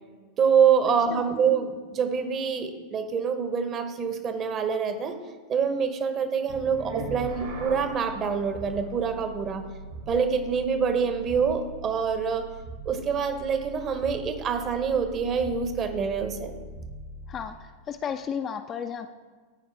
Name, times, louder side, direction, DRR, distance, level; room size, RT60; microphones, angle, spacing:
voice 1, 0.4-5.1 5.5-9.6 10.1-12.5 12.8-16.5, right 6 dB, 30° right, 8 dB, 0.9 m, -26 dB
sound 1, 6.5-17.6, right 3 dB, 60° right, 1.5 m, -40 dB
voice 2, 17.3-19.2, left 7 dB, 25° left, 7 dB, 0.4 m, -34 dB
13.5 x 4.9 x 3.3 m, 1.4 s
figure-of-eight pair, 90°, 0 cm